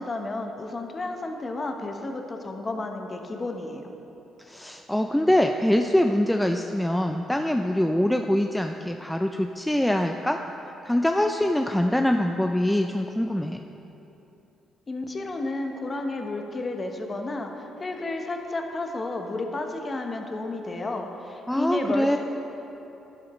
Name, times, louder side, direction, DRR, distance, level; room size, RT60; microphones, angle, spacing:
voice 1, 0.0-3.9 14.9-22.2, left 2 dB, 30° left, 3 dB, 1.0 m, -32 dB
voice 2, 4.4-13.6 21.5-22.2, left 1 dB, 5° left, 4 dB, 0.4 m, -24 dB
11.5 x 10.5 x 3.1 m, 3.0 s
cardioid pair, 90°, 0 cm